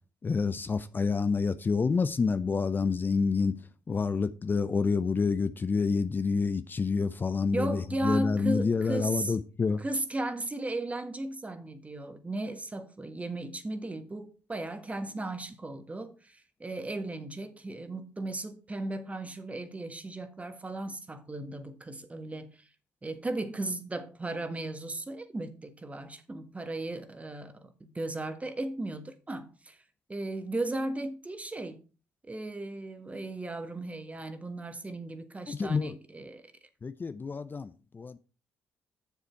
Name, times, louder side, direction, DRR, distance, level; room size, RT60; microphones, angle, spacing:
voice 1, 0.2-3.6 3.9-9.8 35.5-36.0 36.8-38.2, left 4 dB, 35° left, 0.6 m, -28 dB
voice 2, 7.5-9.4 9.8-22.5 23.0-29.8 30.1-31.8 32.3-36.4, right 2 dB, 25° right, 1.5 m, -36 dB
7.1 x 7.0 x 4.6 m
supercardioid pair, 55°, 6 cm